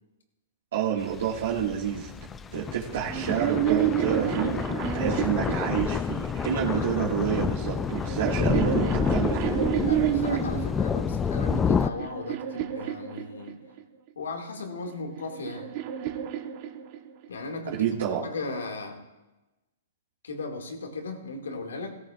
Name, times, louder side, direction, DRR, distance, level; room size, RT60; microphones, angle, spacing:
voice 1, 0.7-2.3 2.5-4.6 4.9-9.6 17.7-18.3, right 8 dB, 70° right, -5 dB, 1.9 m, -29 dB
sound 1, 1.0-11.9, left 6 dB, 15° left, 0.3 m, -29 dB
sound 2, 3.0-6.4 7.3-10.7 11.4-13.8 14.9-17.3, right 10 dB, 40° right, 1.1 m, -30 dB
voice 2, 9.8-13.6 14.2-15.7 17.3-17.8 18.2-19.0 20.2-22.0, left 3 dB, 90° left, 3 dB, 2.2 m, -36 dB
17.0 x 14.0 x 2.5 m, 1.1 s
hypercardioid pair, 140°, 0 cm